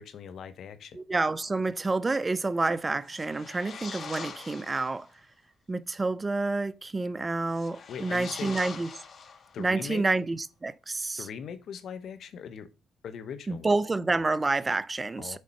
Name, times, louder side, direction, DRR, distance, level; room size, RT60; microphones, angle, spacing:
voice 1, 0.0-1.0 7.9-8.5 9.5-10.0 11.2-12.7 13.0-13.7 15.2-15.4, left 7 dB, 65° left, 0.9 m, -40 dB
voice 2, 0.9-5.1 5.7-8.9 9.6-11.3 13.5-15.4, right 3 dB, 25° right, 0.6 m, -28 dB
sound 1, 3.0-5.1 7.5-9.8, left 5 dB, 50° left, 1.4 m, -43 dB
6.5 x 4.2 x 5.3 m
cardioid pair, 90°, 0 cm